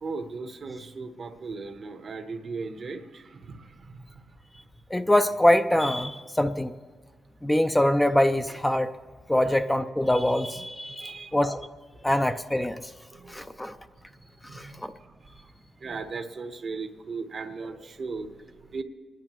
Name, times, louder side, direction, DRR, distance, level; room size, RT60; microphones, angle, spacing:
voice 1, 0.0-4.2 10.5-10.6 11.0-11.4 12.0-12.1 13.1-13.7 14.2-15.5 15.8-18.8, right 4 dB, 55° right, 6 dB, 1.0 m, -38 dB
voice 2, 4.9-6.7 7.4-8.9 9.3-11.7 12.0-12.9 13.3-13.8 14.4-14.9, left 1 dB, 10° left, 8 dB, 0.4 m, -24 dB
28.0 x 10.5 x 3.0 m, 1.5 s
cardioid pair, 90°, 0 cm